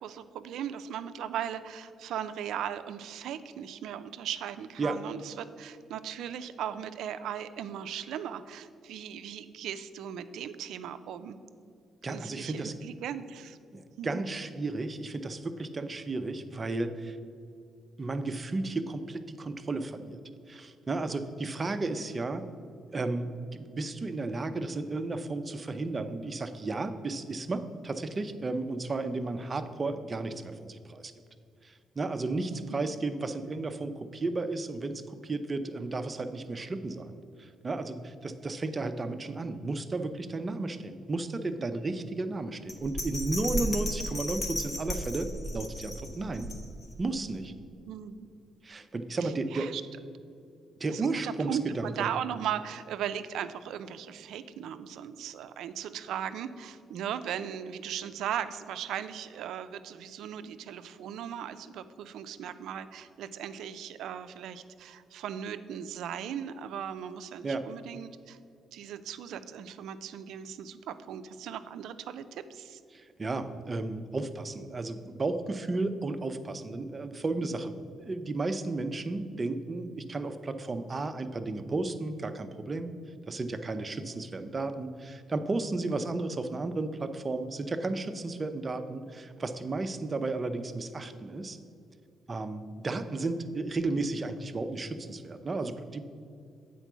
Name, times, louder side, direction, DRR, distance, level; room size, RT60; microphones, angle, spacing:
voice 1, 0.0-11.4 12.1-13.6 14.0-14.2 32.5-32.8 47.9-48.3 49.2-49.8 50.9-68.4 68.7-72.8, right 9 dB, 80° right, 11 dB, 0.4 m, -38 dB
voice 2, 12.0-12.7 13.7-17.2 18.0-20.2 20.5-22.4 22.9-31.1 31.6-46.5 47.0-47.5 48.6-49.7 50.8-52.1 67.4-67.7 72.9-82.9 83.3-91.6 92.3-96.0, right 3 dB, 30° right, 8 dB, 0.6 m, -33 dB
Bell, 42.7-47.0 47.4-47.5, equal, 40° left, 1.2 m, -34 dB
8.0 x 4.5 x 6.1 m, 2.4 s
cardioid pair, 90°, 0 cm